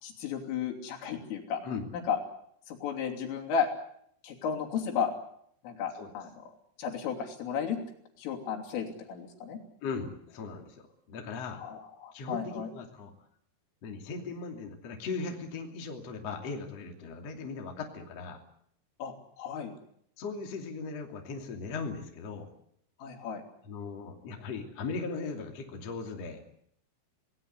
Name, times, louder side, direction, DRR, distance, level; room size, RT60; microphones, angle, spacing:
voice 1, 0.0-1.6 1.9-2.2 2.7-3.7 4.2-5.1 5.6-6.3 6.8-7.8 8.2-9.6 11.5-12.7 19.0-19.8 23.0-23.4, left 7 dB, 75° left, 1 dB, 5.5 m, -33 dB
voice 2, 9.8-11.6 12.1-13.1 13.8-18.4 20.2-22.5 23.7-26.4, left 4 dB, 40° left, 2 dB, 3.1 m, -38 dB
27.0 x 18.5 x 8.1 m, 0.69 s
omnidirectional pair, 5.9 m